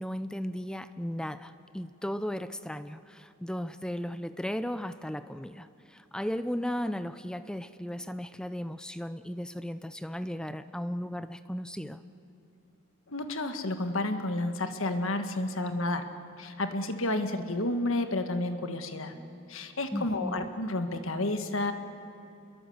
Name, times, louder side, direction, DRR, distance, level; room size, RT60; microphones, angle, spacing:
voice 1, 0.0-12.0 19.9-20.4, equal, 5° left, 12 dB, 0.5 m, -36 dB
voice 2, 13.1-16.1 16.4-19.1 19.5-21.7, left 2 dB, 65° left, 7 dB, 1.6 m, -31 dB
28.0 x 22.0 x 8.0 m, 2.9 s
head